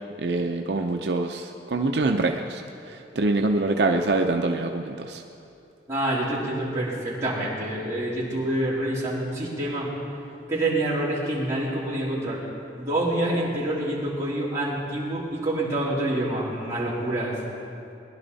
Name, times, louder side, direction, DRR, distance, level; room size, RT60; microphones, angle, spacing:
voice 1, 0.2-5.2, right 2 dB, 70° right, 3 dB, 0.6 m, -25 dB
voice 2, 5.9-9.9 10.5-12.4 12.8-17.4, right 1 dB, 15° right, -9 dB, 3.7 m, -27 dB
21.0 x 11.5 x 4.1 m, 2.7 s
head